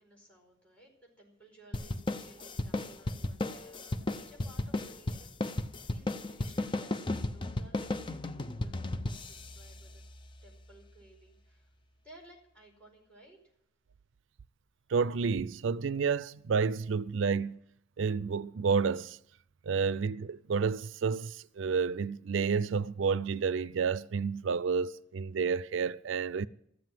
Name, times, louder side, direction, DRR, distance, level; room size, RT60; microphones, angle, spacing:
voice 1, 0.0-10.0 10.4-11.7 12.0-13.5, right 1 dB, 5° left, 4.8 m, -58 dB
sound 1, 1.7-10.6, left 2 dB, 25° left, 0.6 m, -35 dB
voice 2, 14.9-17.6 18.0-19.2 19.7-26.5, right 5 dB, 90° right, 0.4 m, -30 dB
14.0 x 7.9 x 9.2 m
head